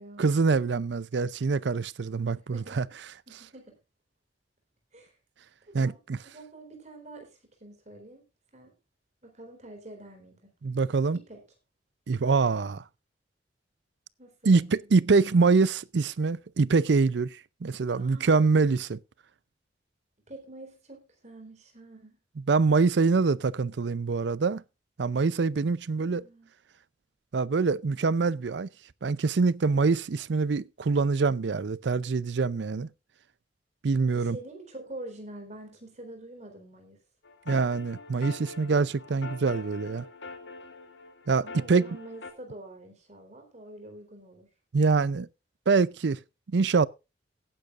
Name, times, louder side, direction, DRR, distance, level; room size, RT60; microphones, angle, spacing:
voice 1, 0.2-2.8 5.7-6.2 10.6-11.2 12.1-12.8 14.5-19.0 22.5-24.6 25.0-26.3 27.3-28.7 29.0-32.9 33.8-34.4 37.5-40.1 41.3-42.0 44.7-45.3 45.7-46.2 46.5-46.9, right 4 dB, 65° right, 0.5 m, -25 dB
voice 2, 2.5-2.9 3.3-3.8 4.9-5.1 5.7-6.0 6.2-8.2 8.5-8.8 9.2-10.5 11.1-11.4 14.2-14.6 17.9-18.5 20.3-22.2 26.0-26.5 34.1-37.0 41.4-44.5, right 1 dB, 40° right, 4.0 m, -46 dB
sound 1, 37.2-42.3, left 3 dB, 75° left, 1.8 m, -44 dB
17.5 x 10.0 x 2.5 m
head